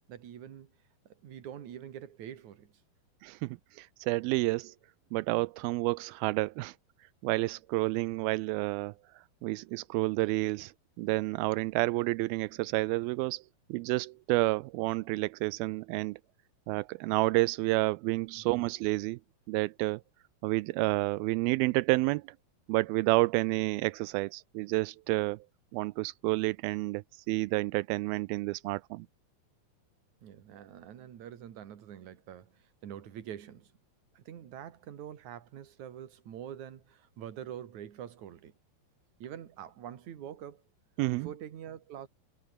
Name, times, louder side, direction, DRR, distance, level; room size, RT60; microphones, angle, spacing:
voice 1, 0.1-0.7 1.0-2.7 18.4-18.6 30.2-33.7 34.1-38.5 39.2-40.6 41.1-42.1, right 10 dB, 55° right, 3.2 m, -45 dB
voice 2, 3.2-4.7 5.1-6.7 7.2-10.7 11.0-13.4 13.7-16.2 16.7-19.2 19.5-20.0 20.4-22.2 22.7-25.4 25.7-29.1 41.0-41.3, right 22 dB, 85° right, 2.4 m, -30 dB
omnidirectional pair, 4.2 m